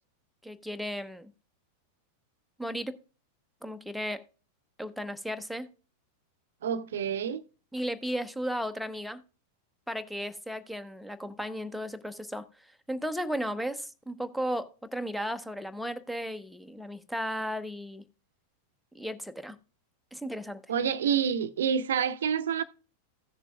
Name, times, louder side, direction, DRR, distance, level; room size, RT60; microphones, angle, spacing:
voice 1, 0.4-1.3 2.6-3.0 3.6-4.2 4.8-5.7 7.7-9.2 9.9-12.4 12.9-18.0 18.9-19.6 20.1-20.6, equal, ahead, 0.8 m, -35 dB
voice 2, 6.6-7.4 20.7-22.6, right 8 dB, 60° right, 0.6 m, -28 dB
16.0 x 6.8 x 2.3 m
figure-of-eight pair, 90°, 0 cm